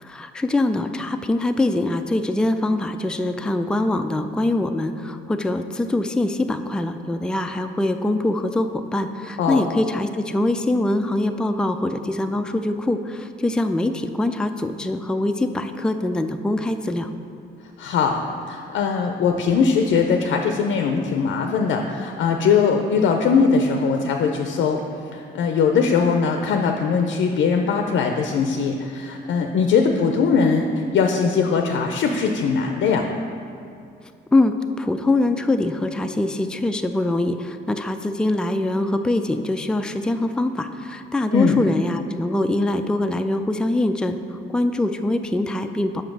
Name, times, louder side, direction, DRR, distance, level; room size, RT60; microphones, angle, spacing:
voice 1, 0.0-17.1 34.3-46.0, left 2 dB, 5° left, 7 dB, 0.3 m, -23 dB
voice 2, 17.8-24.8 25.1-33.1 41.3-41.6, left 5 dB, 75° left, 4 dB, 0.5 m, -20 dB
5.7 x 5.2 x 6.0 m, 2.5 s
cardioid pair, 90°, 20 cm